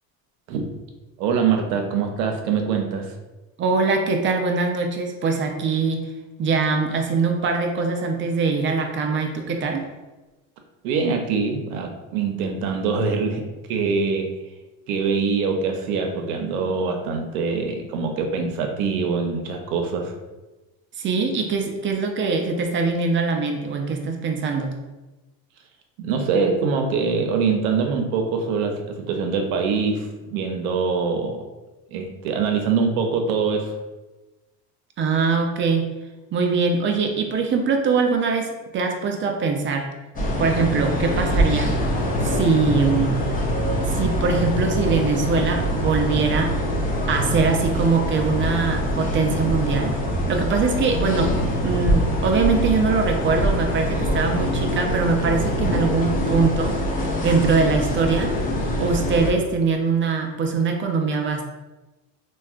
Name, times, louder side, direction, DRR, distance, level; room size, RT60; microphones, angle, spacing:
voice 1, 1.2-3.1 10.8-13.4 13.7-14.3 14.9-20.1 26.0-31.4 31.9-33.7, right 5 dB, 85° right, 4 dB, 0.6 m, -24 dB
voice 2, 3.6-6.1 6.4-9.9 21.0-24.8 35.0-35.9 36.3-39.9 40.4-41.7 42.2-43.2 43.9-46.5 47.1-49.9 50.3-51.3 51.6-56.8 57.2-58.3 58.8-61.4, right 4 dB, 30° right, 4 dB, 0.4 m, -22 dB
sound 1, 40.2-59.3, equal, 20° left, 0.5 m, -24 dB
3.3 x 2.2 x 2.4 m, 1.1 s
supercardioid pair, 100°, 41 cm